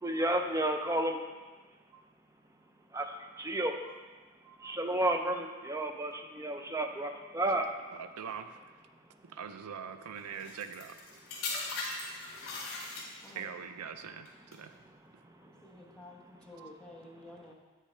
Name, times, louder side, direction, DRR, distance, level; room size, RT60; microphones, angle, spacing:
voice 1, 0.0-1.2 2.9-4.0 4.5-7.7 12.7-12.9 16.6-16.7, right 1 dB, 15° right, 4 dB, 0.4 m, -32 dB
voice 2, 7.9-8.6 9.3-11.0 13.3-14.8, right 7 dB, 90° right, 9 dB, 0.4 m, -42 dB
sound 1, 10.4-13.5 14.3-14.5, left 3 dB, 65° left, 2.3 m, -39 dB
voice 3, 13.2-13.6 15.4-17.5, left 1 dB, 5° left, -4 dB, 0.9 m, -52 dB
8.4 x 6.5 x 3.3 m, 1.4 s
head